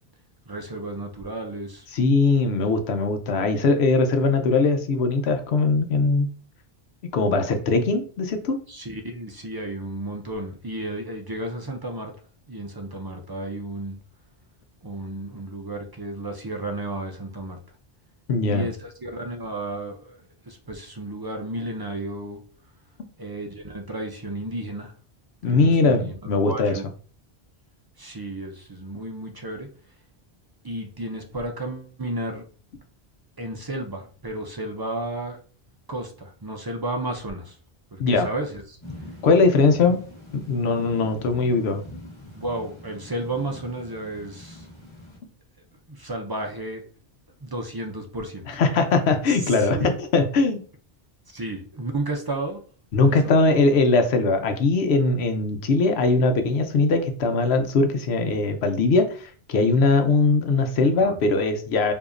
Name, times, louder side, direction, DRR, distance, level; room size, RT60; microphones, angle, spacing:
voice 1, 0.5-1.9 8.7-12.1 12.5-14.0 14.8-17.6 18.5-22.4 23.2-24.9 25.4-26.8 28.0-29.7 30.6-32.5 33.4-35.4 35.9-37.6 37.9-38.8 39.9-40.0 42.3-44.7 45.9-46.8 47.4-48.5 49.3-49.9 51.3-52.6 53.2-53.8 61.0-61.2, right 1 dB, 40° right, 3 dB, 0.3 m, -33 dB
voice 2, 1.9-6.3 7.1-8.6 18.3-18.6 25.4-26.8 38.0-38.3 39.2-40.0 40.3-41.8 48.5-50.6 52.9-61.9, left 3 dB, 80° left, 7 dB, 0.9 m, -21 dB
sound 1, 38.8-45.2, left 1 dB, 30° left, 1.1 m, -43 dB
4.8 x 2.7 x 2.5 m, 0.41 s
omnidirectional pair, 1.1 m